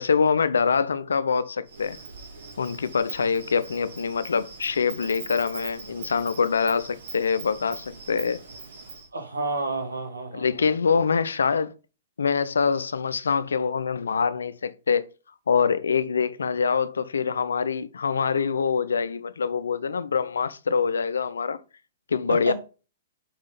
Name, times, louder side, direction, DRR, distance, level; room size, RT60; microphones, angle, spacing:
voice 1, 0.0-2.0 2.6-8.4 10.3-11.7 12.2-15.1 15.5-21.6 22.1-22.5, left 5 dB, 80° left, 0.5 m, -24 dB
Insect, 1.7-9.1, right 4 dB, 70° right, 2.2 m, -41 dB
voice 2, 9.1-10.7 22.3-22.5, right 3 dB, 90° right, 1.5 m, -30 dB
5.0 x 3.6 x 5.1 m
hypercardioid pair, 120°, 0 cm